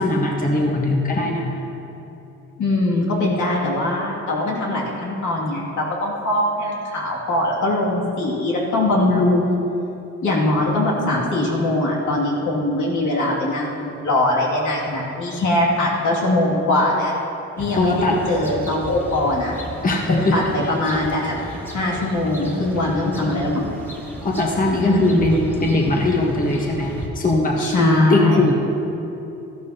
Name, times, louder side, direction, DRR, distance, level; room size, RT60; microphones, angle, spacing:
voice 1, 0.0-1.6 17.7-18.2 19.8-20.5 24.2-28.5, left 2 dB, 30° left, 0 dB, 1.3 m, -20 dB
voice 2, 2.6-9.6 10.2-17.1 17.6-19.6 20.1-23.6 24.7-25.2 27.6-28.4, left 1 dB, 75° left, -4 dB, 2.6 m, -21 dB
sound 1, 17.6-27.1, equal, 5° left, 2.3 m, -35 dB
13.5 x 12.0 x 2.9 m, 2.9 s
cardioid pair, 90°, 30 cm